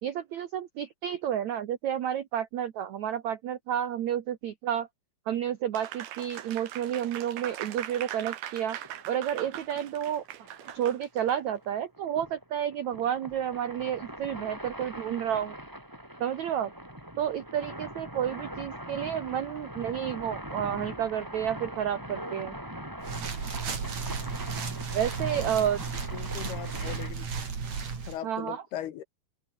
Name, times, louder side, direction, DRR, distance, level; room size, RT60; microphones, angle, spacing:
voice 1, 0.0-4.9 5.3-8.8 9.1-10.2 10.7-15.6 16.2-16.7 17.2-22.6 24.9-25.8 28.2-28.6, right 10 dB, 85° right, 1.6 m, -31 dB
Applause, 5.7-11.3, right 12 dB, 65° right, 3.2 m, -41 dB
sound 1, 8.8-27.1, equal, 5° right, 5.9 m, -42 dB
sound 2, 23.0-28.2, right 5 dB, 40° right, 4.6 m, -34 dB
voice 2, 26.1-27.3 28.1-29.0, left 11 dB, 70° left, 3.3 m, -38 dB
omnidirectional pair, 5.1 m